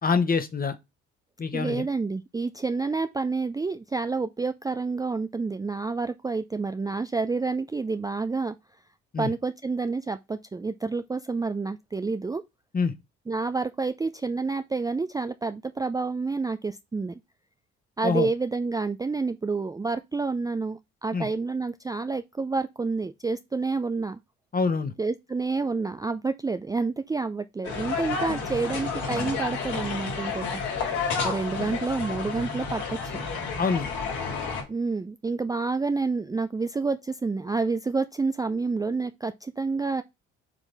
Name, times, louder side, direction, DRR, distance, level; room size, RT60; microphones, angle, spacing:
voice 1, 0.0-0.7 1.4-1.8 9.1-9.3 12.7-12.9 18.0-18.3 21.1-21.3 24.5-24.9 33.6-33.9, left 5 dB, 30° left, 1.2 m, -25 dB
voice 2, 1.5-8.5 9.2-12.4 13.3-17.1 18.0-24.2 25.0-30.6 31.2-33.3 34.7-40.0, right 4 dB, 10° right, 0.4 m, -29 dB
sound 1, 27.6-34.6, left 5 dB, 75° left, 3.7 m, -30 dB
7.3 x 3.8 x 3.4 m
supercardioid pair, 65°, 30 cm